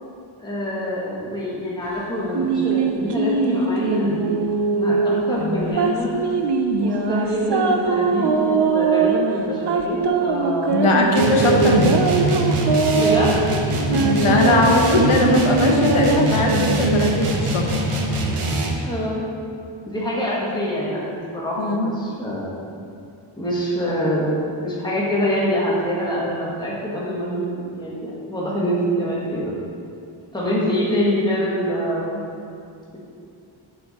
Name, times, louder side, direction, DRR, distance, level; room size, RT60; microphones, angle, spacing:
voice 1, 0.4-4.4 4.7-6.1 6.8-10.8 12.9-14.0 18.8-19.2 19.8-22.5 23.4-29.5 30.3-32.2, equal, 10° left, -7 dB, 1.6 m, -25 dB
sound 1, 2.3-17.2, right 4 dB, 55° right, 0.6 m, -22 dB
voice 2, 5.4-5.7 10.7-12.1 14.0-17.7 21.6-21.9, left 2 dB, 80° left, 1 dB, 0.9 m, -20 dB
sound 2, 11.2-18.9, right 2 dB, 85° right, 1.0 m, -23 dB
7.8 x 6.2 x 4.2 m, 2.5 s
wide cardioid pair, 115°, 49 cm